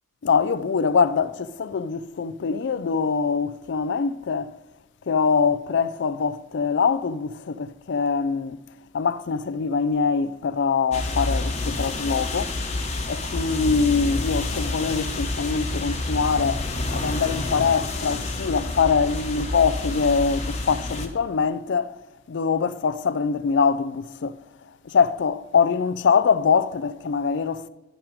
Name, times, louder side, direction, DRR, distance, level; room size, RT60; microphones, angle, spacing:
voice 1, 0.2-4.5 5.1-8.6 8.9-12.5 13.1-16.6 16.9-21.9 22.3-24.3 24.9-27.7, left 5 dB, 55° left, 0.4 m, -23 dB
sound 1, 10.9-21.1, left 2 dB, 30° left, 1.1 m, -28 dB
11.0 x 5.9 x 5.0 m
head